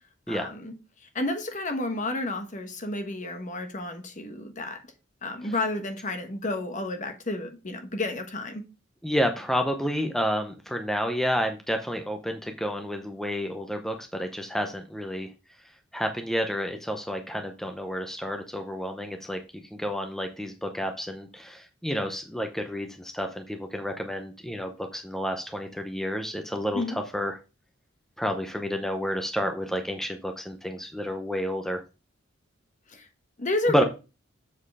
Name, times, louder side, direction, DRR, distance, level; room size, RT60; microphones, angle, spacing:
voice 1, 0.3-0.7 1.1-4.8 5.2-8.6 26.7-27.0 32.9-33.1 33.4-33.8, left 2 dB, 40° left, 1.3 m, -31 dB
voice 2, 9.0-15.3 15.9-19.4 19.7-27.3 28.2-31.8 33.7-33.8, equal, ahead, 0.7 m, -30 dB
7.5 x 4.5 x 4.8 m
head